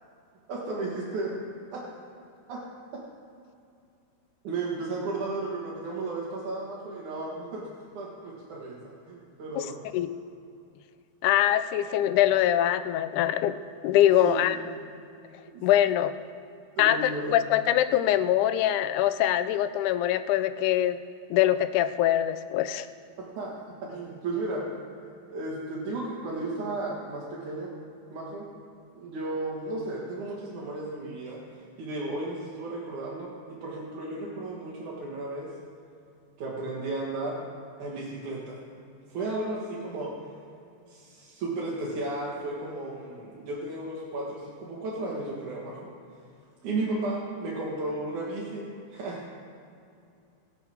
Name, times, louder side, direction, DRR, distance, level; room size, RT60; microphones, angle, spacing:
voice 1, 0.5-1.4 1.7-1.8 2.5-2.6 2.9-3.0 4.4-7.7 7.9-9.8 14.2-14.8 15.5-15.7 16.8-17.4 23.4-23.5 23.8-24.6 25.3-27.7 28.1-28.5 28.9-35.5 36.4-37.4 37.8-38.6 39.1-40.3 40.9-45.9 46.6-49.2, right 2 dB, 75° right, -5 dB, 3.1 m, -34 dB
voice 2, 11.2-13.6 13.8-14.6 15.6-16.1 16.8-21.0 21.3-22.9, left 12 dB, 85° left, 12 dB, 2.1 m, -23 dB
23.0 x 7.8 x 4.5 m, 2.5 s
omnidirectional pair, 3.6 m